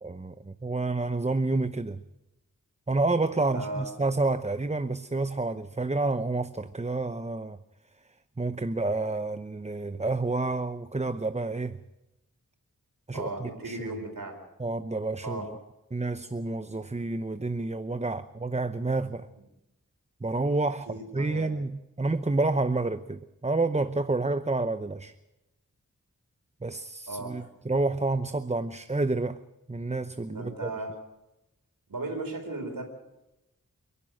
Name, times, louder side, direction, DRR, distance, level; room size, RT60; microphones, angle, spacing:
voice 1, 0.0-2.0 2.9-7.6 8.4-11.8 13.1-13.9 14.6-15.6 15.9-19.3 20.2-20.9 21.1-25.1 26.6-29.4 29.7-30.7, right 3 dB, 20° right, 0.8 m, -29 dB
voice 2, 3.5-3.9 13.1-14.4 15.2-15.5 19.3-19.4 20.9-21.5 27.1-27.3 30.3-31.0 31.9-32.8, right 2 dB, 85° right, 4.5 m, -36 dB
28.5 x 11.0 x 9.1 m
wide cardioid pair, 70°, 33 cm